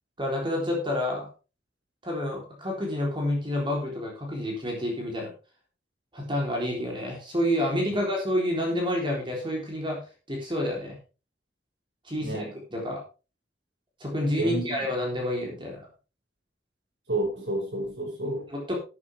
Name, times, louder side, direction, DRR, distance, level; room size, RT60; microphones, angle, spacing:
voice 1, 0.2-1.3 2.0-5.3 6.1-10.0 10.3-11.0 12.0-13.0 14.0-15.9 18.5-18.7, left 1 dB, 30° right, -1 dB, 4.0 m, -29 dB
voice 2, 12.2-12.5 14.4-14.6 17.1-18.5, right 1 dB, 75° right, 1 dB, 5.9 m, -30 dB
13.0 x 9.6 x 3.7 m, 0.32 s
head